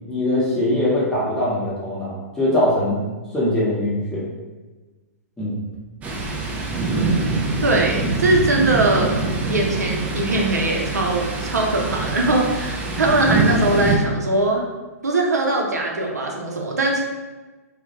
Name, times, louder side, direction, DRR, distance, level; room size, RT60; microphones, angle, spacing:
voice 1, 0.1-3.0 3.3-4.3 5.4-5.6, left 1 dB, 5° left, -8 dB, 0.8 m, -22 dB
Thunder, 6.0-14.0, right 3 dB, 15° right, 0.3 m, -24 dB
voice 2, 7.6-14.6 15.0-17.0, right 2 dB, 85° right, 0 dB, 0.5 m, -21 dB
2.1 x 2.1 x 2.8 m, 1.2 s
hypercardioid pair, 120°, 9 cm